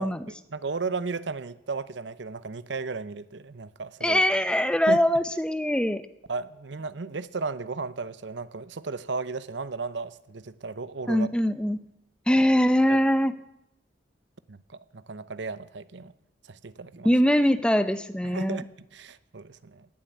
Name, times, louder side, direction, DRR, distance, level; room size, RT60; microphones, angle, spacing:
voice 1, 0.0-4.2 4.9-5.0 6.3-11.3 12.9-13.0 14.5-16.1 16.5-17.1 18.2-18.6 18.9-19.9, right 4 dB, 70° right, 16 dB, 0.7 m, -35 dB
voice 2, 4.0-6.0 11.1-11.8 12.3-13.4 17.0-18.6, equal, 5° left, 12 dB, 0.6 m, -22 dB
18.5 x 7.6 x 9.5 m, 0.82 s
head